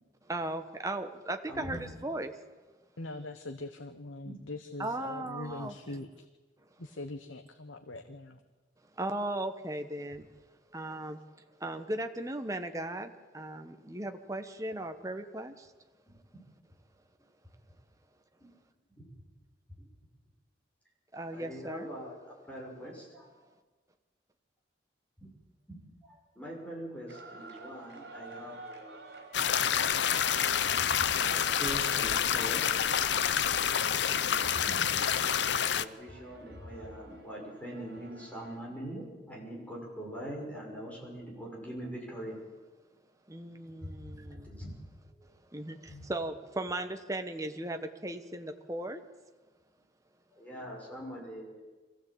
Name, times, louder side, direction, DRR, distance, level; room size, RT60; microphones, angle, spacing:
voice 1, 0.2-2.4 4.8-6.0 9.0-10.3 10.7-11.2 11.6-15.7 21.1-21.9 32.3-32.6 43.3-44.5 45.5-49.0, right 1 dB, 15° right, 6 dB, 1.2 m, -37 dB
voice 2, 1.5-1.8 4.2-4.3 18.4-18.5 19.0-19.1 21.3-22.2 22.5-23.3 25.2-25.3 26.1-29.0 29.8-33.0 33.9-35.3 35.8-42.4 44.0-44.7 45.2-45.3 45.9-46.0 50.3-51.6, equal, 5° left, -3 dB, 5.9 m, -43 dB
voice 3, 3.0-6.2 6.8-8.4, left 2 dB, 90° left, 7 dB, 1.2 m, -42 dB
sound 1, 27.1-38.6, right 2 dB, 60° right, 3.9 m, -51 dB
sound 2, 29.3-35.8, left 8 dB, 65° left, 0.6 m, -28 dB
23.0 x 16.0 x 8.6 m, 1.3 s
head